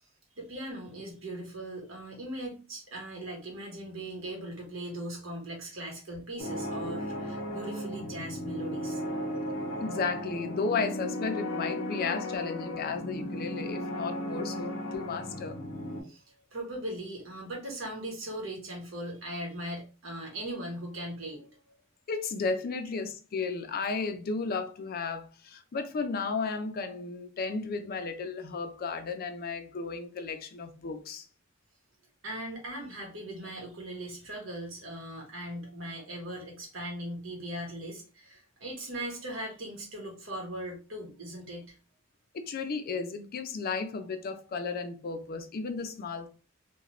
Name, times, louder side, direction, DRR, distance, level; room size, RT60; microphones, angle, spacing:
voice 1, 0.3-9.0 16.0-21.8 32.2-41.8, right 1 dB, 75° right, 1.1 m, -39 dB
sound 1, 6.4-16.0, left 1 dB, 85° left, 0.7 m, -35 dB
voice 2, 9.8-15.6 22.1-31.3 42.3-46.3, left 4 dB, 50° left, 0.4 m, -34 dB
2.4 x 2.1 x 3.0 m
head